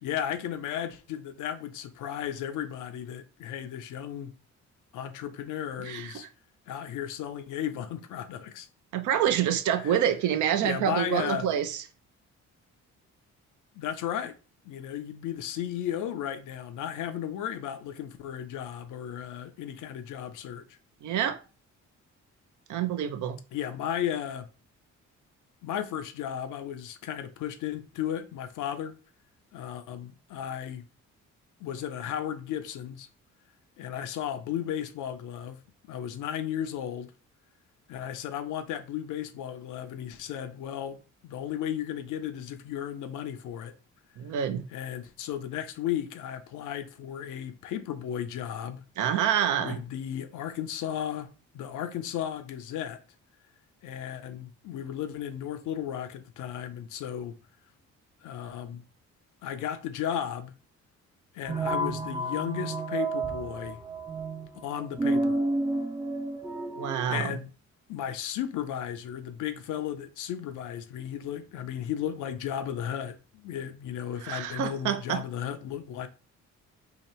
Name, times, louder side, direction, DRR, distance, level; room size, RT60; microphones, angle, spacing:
voice 1, 0.0-4.3 4.9-6.3 6.7-8.7 9.8-10.0 10.6-11.5 13.7-14.4 14.6-20.8 23.5-24.5 25.6-29.0 29.5-30.8 31.6-33.1 33.8-35.6 35.9-37.1 37.9-43.8 44.7-48.8 49.6-51.3 51.5-53.0 53.8-57.4 58.2-58.8 59.4-60.5 61.3-63.8 64.6-65.4 67.1-67.5 67.9-76.1, left 10 dB, 85° left, 0.6 m, -34 dB
voice 2, 5.8-6.1 8.9-11.8 21.0-21.4 22.7-23.4 44.2-44.6 49.0-49.8 66.8-67.3 74.2-75.2, right 9 dB, 75° right, 0.6 m, -27 dB
sound 1, 61.5-67.1, right 2 dB, 15° right, 0.4 m, -30 dB
2.9 x 2.9 x 4.2 m
cardioid pair, 90°, 30 cm